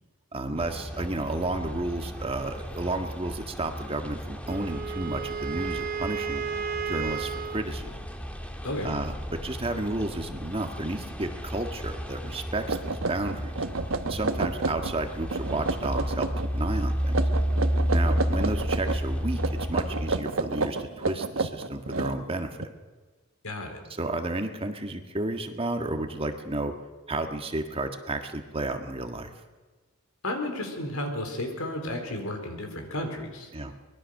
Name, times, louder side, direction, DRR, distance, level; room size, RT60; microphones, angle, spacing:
voice 1, 0.3-6.4 6.8-7.9 8.8-13.6 14.0-16.3 16.5-17.1 17.9-22.6 24.0-26.7 27.1-29.3 33.5-33.7, right 2 dB, 25° right, 5 dB, 1.6 m, -32 dB
sound 1, 0.6-20.2, equal, 5° left, 1.7 m, -32 dB
Wind instrument woodwind instrument, 4.5-7.7, right 7 dB, 40° right, 1.0 m, -33 dB
sound 2, 12.2-12.3 12.7-15.0 15.3-16.5 17.1-19.0 19.4-22.7, right 3 dB, 70° right, 1.1 m, -30 dB
voice 2, 23.4-23.8 30.2-33.5, left 1 dB, 80° left, 4 dB, 4.3 m, -32 dB
24.0 x 21.0 x 6.6 m, 1.3 s
head